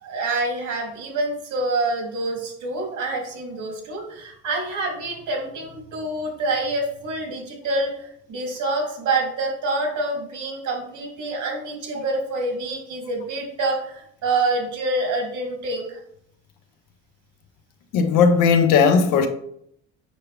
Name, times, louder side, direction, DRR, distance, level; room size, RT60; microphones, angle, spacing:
voice 1, 0.0-16.0, right 2 dB, 60° right, 3.0 m, -27 dB
voice 2, 17.9-19.3, left 6 dB, 65° left, 1.1 m, -16 dB
7.7 x 5.7 x 3.4 m
hypercardioid pair, 65°, 33 cm